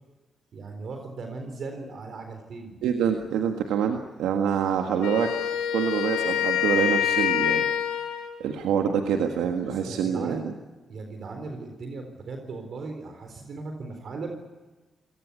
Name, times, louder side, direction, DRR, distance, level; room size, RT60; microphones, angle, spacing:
voice 1, 0.5-2.8 9.4-10.5 10.9-14.4, right 3 dB, 65° right, 5 dB, 4.0 m, -38 dB
voice 2, 2.8-5.3 5.7-7.6 8.4-10.5, right 7 dB, 80° right, 5 dB, 1.7 m, -26 dB
Wind instrument woodwind instrument, 5.0-8.4, left 10 dB, 90° left, 2.8 m, -26 dB
27.0 x 18.5 x 8.4 m, 1.2 s
supercardioid pair, 45°, 0 cm